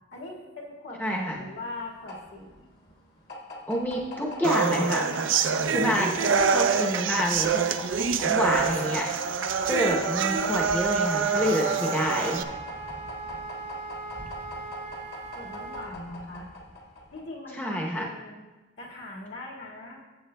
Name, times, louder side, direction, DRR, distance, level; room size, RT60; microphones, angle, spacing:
voice 1, 0.1-2.7 15.3-16.5 17.1-18.4 18.8-20.1, left 2 dB, 65° left, -3 dB, 1.9 m, -41 dB
voice 2, 1.0-1.4 3.7-5.1 5.7-7.6 8.0-9.1 9.7-12.4 17.5-18.1, equal, 10° left, -2 dB, 0.8 m, -28 dB
sound 1, 1.3-17.3, left 1 dB, 50° left, 1.3 m, -42 dB
sound 2, 4.4-12.4, right 6 dB, 70° right, 0.5 m, -26 dB
Wind instrument woodwind instrument, 11.1-15.9, right 3 dB, 30° right, 0.7 m, -39 dB
13.5 x 7.8 x 2.2 m, 1.2 s
head